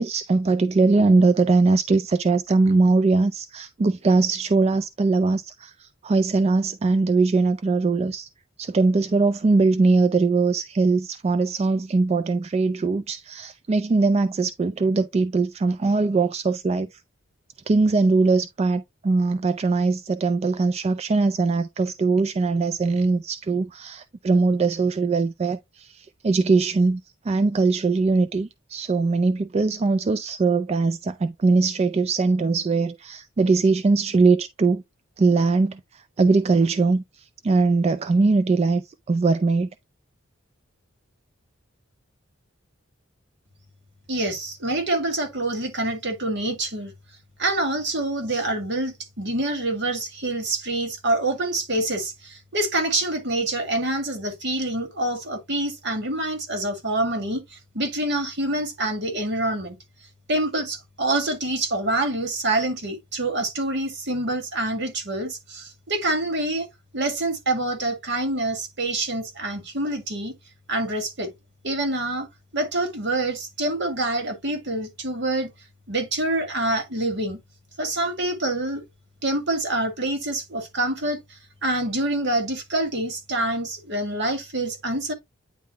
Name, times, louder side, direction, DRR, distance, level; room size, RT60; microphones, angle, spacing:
voice 1, 0.0-8.3 8.6-17.0 17.7-34.8 35.2-39.7, right 3 dB, 30° right, 0.3 m, -21 dB
voice 2, 44.1-46.9 47.4-59.8 60.3-66.7 66.9-70.3 70.7-71.3 71.6-72.3 72.5-75.5 75.9-77.4 77.8-78.8 79.2-85.1, right 2 dB, 60° right, 1.9 m, -26 dB
9.4 x 3.6 x 2.9 m
head